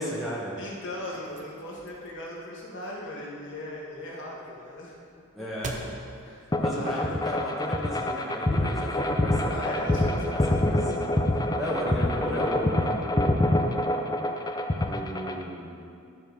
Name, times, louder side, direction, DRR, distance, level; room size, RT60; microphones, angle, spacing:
voice 1, 0.0-0.6 5.3-5.8 6.6-9.7 10.3-11.0 11.5-13.4 14.8-15.8, equal, ahead, -7 dB, 1.4 m, -34 dB
voice 2, 0.6-5.0 6.2-7.2 9.5-10.6, left 1 dB, 55° left, -4 dB, 1.8 m, -38 dB
sound 1, 0.6-7.7, right 2 dB, 35° right, 0.7 m, -45 dB
sound 2, 6.5-15.4, left 1 dB, 20° left, 0.5 m, -26 dB
13.0 x 4.4 x 5.2 m, 2.4 s
head